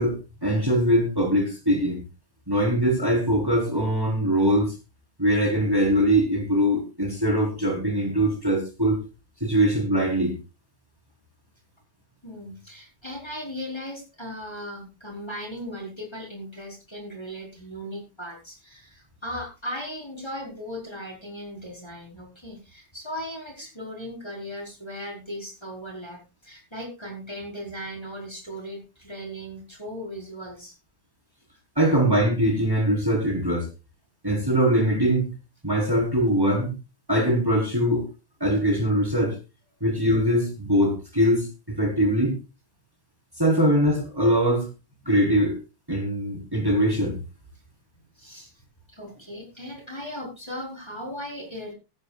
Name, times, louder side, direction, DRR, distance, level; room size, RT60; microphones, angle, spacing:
voice 1, 0.0-2.0 2.5-4.7 5.2-9.0 9.4-10.3 31.8-33.7 34.2-35.3 35.6-36.7 37.1-38.0 38.4-39.4 39.8-42.4 43.4-44.7 45.1-45.6 45.9-47.2, equal, 10° right, 2 dB, 4.2 m, -22 dB
voice 2, 12.2-30.7 48.2-48.5 48.9-51.7, equal, 10° left, 1 dB, 4.4 m, -37 dB
17.0 x 13.5 x 2.4 m, 0.27 s
omnidirectional pair, 2.2 m